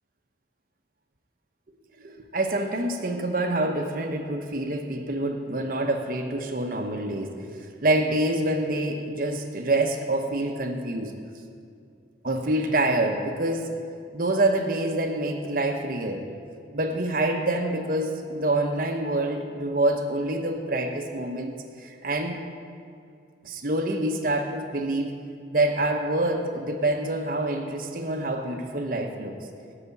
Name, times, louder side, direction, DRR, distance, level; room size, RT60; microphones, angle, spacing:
voice 1, 2.0-11.1 12.2-13.7 14.1-16.3 16.7-22.4 23.4-25.2 25.5-29.3, right 1 dB, 50° right, 4 dB, 0.9 m, -26 dB
12.5 x 5.0 x 8.3 m, 2.4 s
head